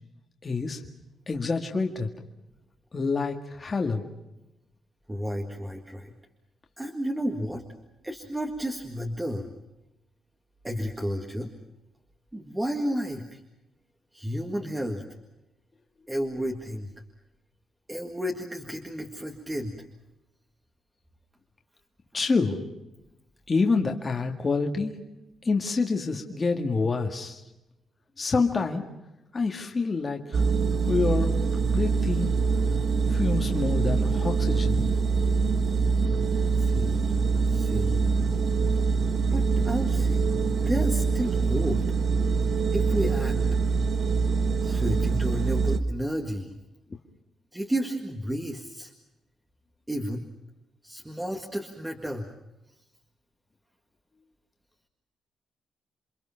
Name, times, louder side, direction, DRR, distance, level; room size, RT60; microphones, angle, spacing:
voice 1, 0.4-0.8 1.3-2.1 2.9-4.0 22.1-22.6 23.5-24.9 25.5-27.4 28.2-28.8 29.3-30.4 30.8-32.4 33.1-34.8, left 4 dB, 25° left, 2 dB, 1.9 m, -27 dB
voice 2, 5.1-6.1 6.8-7.6 8.0-9.5 10.6-11.5 12.3-13.4 14.1-15.0 16.1-16.9 17.9-19.8 36.6-37.2 37.5-38.1 39.2-41.8 42.7-43.4 44.6-46.5 47.5-48.9 49.9-50.2 50.8-52.3, equal, 10° right, 2 dB, 1.9 m, -32 dB
sound 1, 30.3-45.8, right 4 dB, 45° right, 1.3 m, -24 dB
28.5 x 25.0 x 5.8 m, 0.96 s
wide cardioid pair, 175°, 0 cm